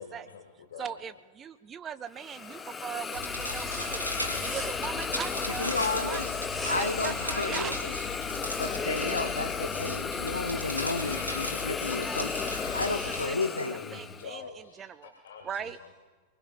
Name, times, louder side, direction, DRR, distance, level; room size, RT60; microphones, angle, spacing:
voice 1, 0.0-0.9 13.2-13.3 13.7-15.9, left 6 dB, 60° left, 3 dB, 1.7 m, -46 dB
voice 2, 0.8-4.1 4.3-6.3 6.7-8.2 11.9-15.1 15.4-15.8, right 8 dB, 25° right, 15 dB, 0.4 m, -40 dB
Hiss, 2.2-14.3, left 5 dB, 15° left, 0.6 m, -34 dB
sound 1, 2.2-8.6, right 2 dB, ahead, 3.8 m, -47 dB
sound 2, 3.1-13.3, left 2 dB, 90° right, 2.3 m, -37 dB
voice 3, 5.6-6.3 6.7-7.9 8.6-12.4 12.7-13.8, left 3 dB, 80° left, 7 dB, 0.9 m, -32 dB
28.0 x 20.0 x 2.3 m, 1.4 s
figure-of-eight pair, 90°, 0 cm